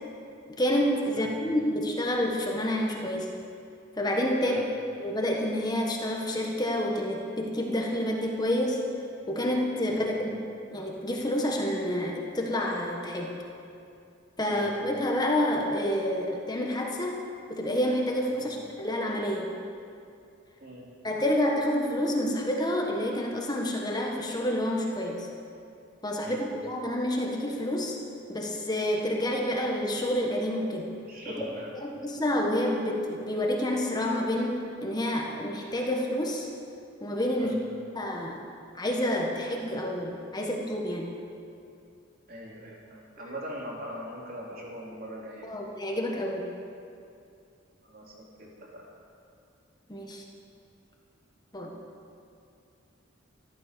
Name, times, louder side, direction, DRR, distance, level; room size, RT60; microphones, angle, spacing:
voice 1, 0.6-3.3 4.0-4.7 5.0-8.8 9.3-10.3 10.7-13.4 14.4-17.2 17.5-19.5 21.0-25.3 26.0-28.0 28.3-30.9 31.3-31.4 31.7-36.5 37.0-37.6 37.9-38.4 38.8-41.1 43.2-43.3 45.4-46.5 49.9-50.2 51.5-51.7, left 1 dB, 20° left, 0 dB, 1.5 m, -28 dB
voice 2, 31.1-31.7 37.4-37.6 42.3-45.5 47.8-48.8, equal, 50° right, -4 dB, 3.6 m, -41 dB
13.5 x 13.0 x 6.9 m, 2.5 s
head